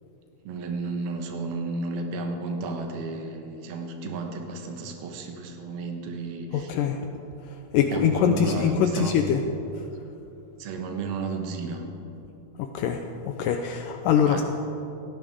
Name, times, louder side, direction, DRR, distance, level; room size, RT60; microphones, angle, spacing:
voice 1, 0.4-6.7 7.8-9.2 10.6-11.8 14.1-14.4, right 3 dB, 75° right, 3 dB, 3.0 m, -33 dB
voice 2, 6.5-7.1 7.4-9.4 9.7-9.9 12.6-14.4, left 8 dB, 90° left, 5 dB, 1.9 m, -24 dB
18.0 x 15.5 x 3.6 m, 2.9 s
omnidirectional pair, 4.5 m